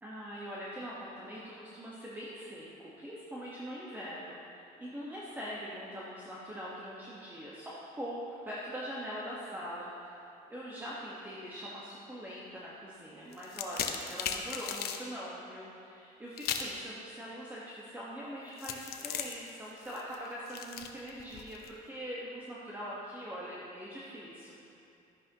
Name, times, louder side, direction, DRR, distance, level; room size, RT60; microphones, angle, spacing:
voice 1, 0.0-10.2 10.5-24.6, equal, 10° right, -7 dB, 1.4 m, -42 dB
sound 1, 13.3-15.0 16.4-16.8 18.6-21.7, left 8 dB, 70° left, 0.8 m, -37 dB
12.5 x 10.0 x 3.0 m, 2.7 s
cardioid pair, 110°, 17 cm